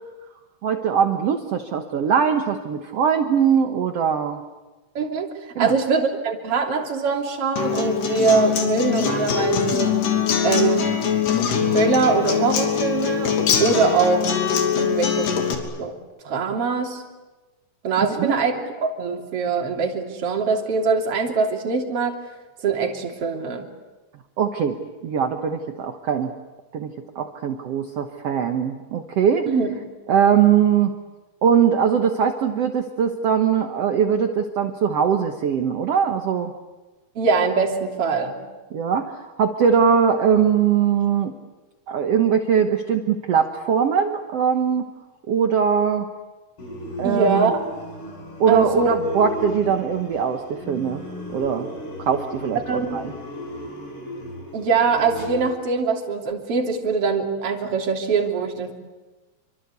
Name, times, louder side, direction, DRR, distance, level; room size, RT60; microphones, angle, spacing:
voice 1, 0.6-4.4 5.5-5.8 18.2-18.3 24.4-26.3 26.7-29.5 30.1-30.9 31.4-36.5 38.7-41.3 41.9-44.8 45.3-46.1 47.0-47.5 48.4-51.0 51.3-51.7 52.0-53.1, right 7 dB, 65° right, 5 dB, 1.6 m, -21 dB
voice 2, 5.0-5.3 5.6-9.9 10.4-11.0 11.7-13.4 13.6-14.3 14.7-15.3 15.8-16.0 16.2-17.0 17.8-18.5 18.8-22.2 22.6-23.7 29.5-29.7 37.2-38.4 47.0-47.6 48.5-48.9 52.7-53.0 54.5-58.7, right 4 dB, 40° right, 1 dB, 3.7 m, -22 dB
Acoustic guitar, 7.6-15.5, left 7 dB, 85° left, 5.0 m, -22 dB
sound 1, 46.6-55.5, left 1 dB, 35° left, 6.6 m, -35 dB
27.5 x 25.0 x 8.3 m, 1.2 s
omnidirectional pair, 4.6 m